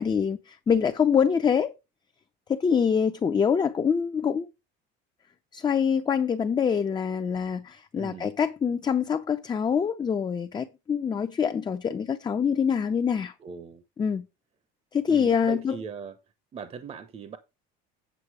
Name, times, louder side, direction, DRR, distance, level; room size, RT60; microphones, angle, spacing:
voice 1, 0.0-1.7 2.5-4.5 5.5-13.3 14.0-14.2 14.9-15.8, left 7 dB, 20° left, 0.7 m, -25 dB
voice 2, 8.0-8.3 13.4-13.8 15.1-16.2 16.5-17.4, right 6 dB, 30° right, 0.9 m, -39 dB
8.4 x 6.7 x 4.7 m
cardioid pair, 140°, 21 cm